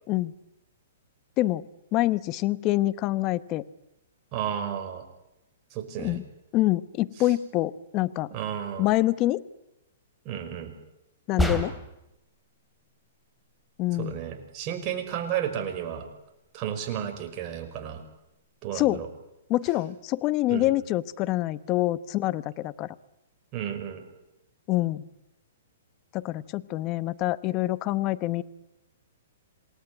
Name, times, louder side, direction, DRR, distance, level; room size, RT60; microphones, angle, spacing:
voice 1, 1.9-3.6 6.0-6.2 6.5-8.3 8.8-9.4 11.3-11.7 13.8-14.2 18.7-19.0 19.5-22.9 24.7-25.0 26.1-28.4, left 16 dB, 30° left, 17 dB, 0.9 m, -26 dB
voice 2, 4.3-5.1 5.7-6.2 7.2-7.3 8.3-8.9 10.2-10.7 13.9-16.1 16.5-18.0 18.6-19.1 20.5-20.7 23.5-24.0, right 9 dB, 35° right, 4 dB, 5.5 m, -32 dB
sound 1, 11.4-12.1, right 1 dB, ahead, 2.8 m, -27 dB
27.5 x 19.5 x 9.7 m, 0.90 s
hypercardioid pair, 145°, 0 cm